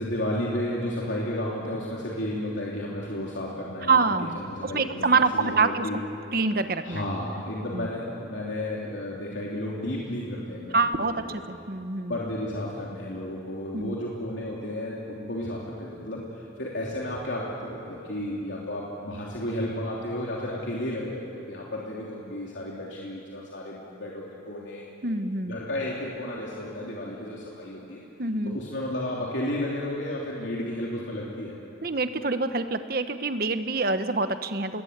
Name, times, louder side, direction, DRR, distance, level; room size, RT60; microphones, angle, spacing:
voice 1, 0.0-6.0 6.8-11.4 12.1-24.9 25.5-28.0 28.4-31.6, left 1 dB, 80° left, -4 dB, 3.2 m, -33 dB
voice 2, 3.9-4.4 4.6-5.8 6.3-7.0 7.7-7.9 10.7-12.1 13.7-14.0 25.0-25.6 28.2-28.6 31.8-34.8, right 4 dB, 50° right, 10 dB, 1.1 m, -26 dB
26.5 x 21.0 x 8.2 m, 2.9 s
head